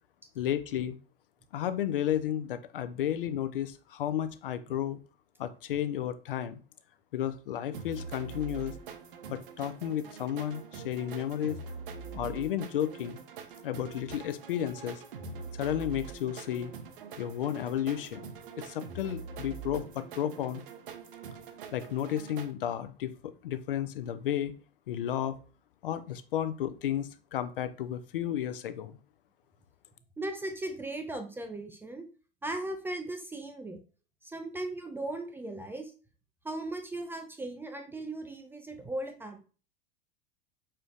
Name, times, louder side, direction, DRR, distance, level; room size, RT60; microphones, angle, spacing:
voice 1, 0.4-1.0 1.5-5.0 5.4-6.6 7.1-8.8 9.3-11.6 12.1-13.2 13.6-15.0 15.5-16.7 17.2-18.3 18.6-20.6 21.7-24.5 24.9-25.4 25.8-29.0, left 10 dB, 60° left, 12 dB, 0.5 m, -32 dB
sound 1, 7.7-22.5, right 5 dB, 60° right, 0.7 m, -44 dB
voice 2, 30.2-32.1 32.4-33.8 34.2-35.9 36.4-39.4, right 2 dB, 5° right, 5 dB, 0.4 m, -37 dB
5.0 x 4.3 x 2.3 m, 0.36 s
figure-of-eight pair, 85°, 31 cm